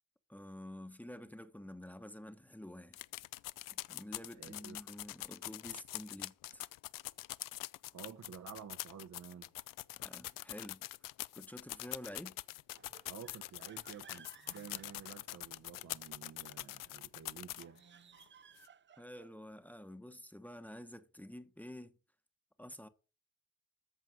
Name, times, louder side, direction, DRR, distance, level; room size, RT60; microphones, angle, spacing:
voice 1, 0.3-3.0 3.9-6.6 10.0-10.8 11.3-12.4 19.0-22.0 22.6-22.9, left 1 dB, 5° left, 1.1 m, -49 dB
sound 1, 2.9-17.8 18.2-18.3 18.6-18.7, left 16 dB, 75° left, 0.5 m, -44 dB
voice 2, 4.4-4.8 7.9-9.5 13.1-17.8, right 7 dB, 55° right, 1.1 m, -51 dB
sound 2, 12.7-15.8 17.4-19.4, right 8 dB, 35° right, 0.7 m, -61 dB
13.5 x 4.6 x 7.6 m
cardioid pair, 90°, 33 cm